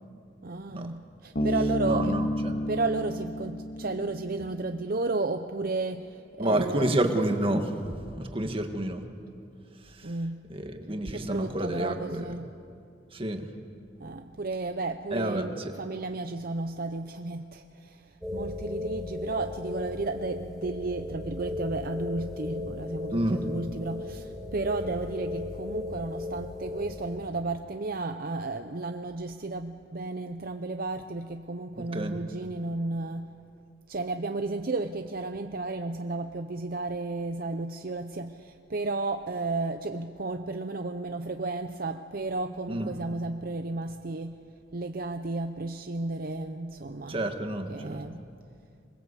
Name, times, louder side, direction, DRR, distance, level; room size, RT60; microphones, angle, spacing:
voice 1, 0.4-2.2 2.6-6.9 10.0-10.5 11.1-12.5 14.0-33.4 33.9-44.4 44.7-47.3 47.7-48.2, right 3 dB, 50° right, 7 dB, 0.7 m, -33 dB
Bass guitar, 1.4-4.8, left 1 dB, 50° left, 2.5 m, -31 dB
voice 2, 1.8-2.5 6.4-9.0 9.8-10.1 10.5-12.3 13.1-13.5 15.1-15.7 23.1-23.4 31.7-32.2 42.7-42.9 47.1-48.0, right 1 dB, 30° right, 5 dB, 1.7 m, -29 dB
sound 1, 18.2-27.2, left 2 dB, ahead, 3.5 m, -36 dB
27.0 x 20.5 x 8.3 m, 2.5 s
head